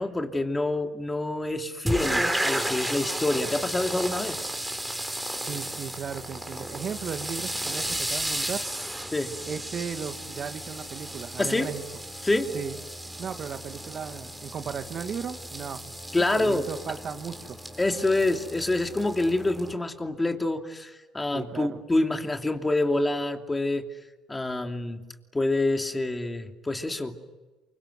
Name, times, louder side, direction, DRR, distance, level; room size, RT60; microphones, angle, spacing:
voice 1, 0.0-4.4 9.1-9.3 11.4-11.7 12.2-12.5 16.1-16.7 17.8-23.8 24.3-25.0 25.3-27.2, left 2 dB, 15° left, 4 dB, 2.9 m, -27 dB
sound 1, 1.9-19.7, right 1 dB, 5° right, 4.4 m, -34 dB
voice 2, 5.5-8.6 9.5-11.8 12.5-12.8 13.2-16.0 16.4-17.6 21.3-21.8, right 7 dB, 50° right, 8 dB, 1.9 m, -36 dB
28.5 x 25.0 x 8.1 m, 1.2 s
supercardioid pair, 95°, 0 cm